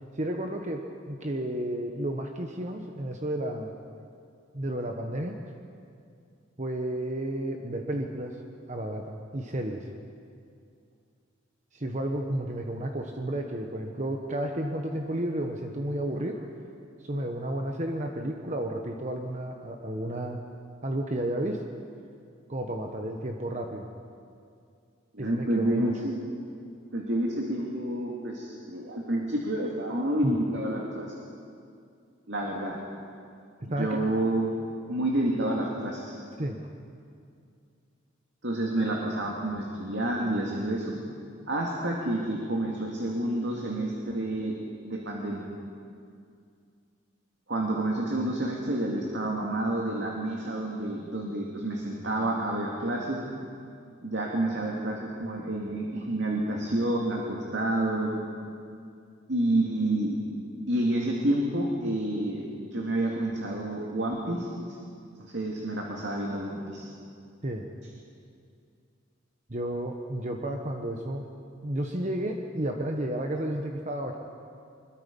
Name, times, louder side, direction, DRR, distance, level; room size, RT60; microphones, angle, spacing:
voice 1, 0.1-3.7 4.5-5.3 6.6-8.4 8.7-9.9 11.7-16.5 17.0-20.4 20.8-21.6 22.5-23.9 25.2-25.9 30.2-30.4 33.6-34.0 36.4-36.6 67.4-67.7 69.5-71.2 71.6-74.2, right 1 dB, 40° right, 3 dB, 1.2 m, -32 dB
voice 2, 25.1-26.1 26.9-31.1 32.3-32.8 33.8-34.4 34.9-36.2 38.4-40.9 41.5-44.6 44.8-45.5 47.5-53.2 54.0-58.2 59.3-60.2 60.7-64.8 65.2-66.8, right 1 dB, 65° right, -1 dB, 2.4 m, -29 dB
25.0 x 22.0 x 5.4 m, 2.4 s
head